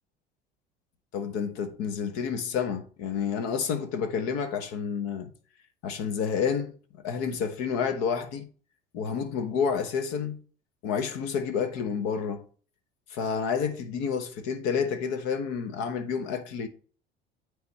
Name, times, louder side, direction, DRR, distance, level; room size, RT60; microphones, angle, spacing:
voice 1, 1.1-5.3 5.8-8.5 8.9-10.4 10.8-12.4 13.1-16.7, left 6 dB, 60° left, 1.2 m, -29 dB
9.3 x 3.6 x 4.3 m
hypercardioid pair, 70°, 29 cm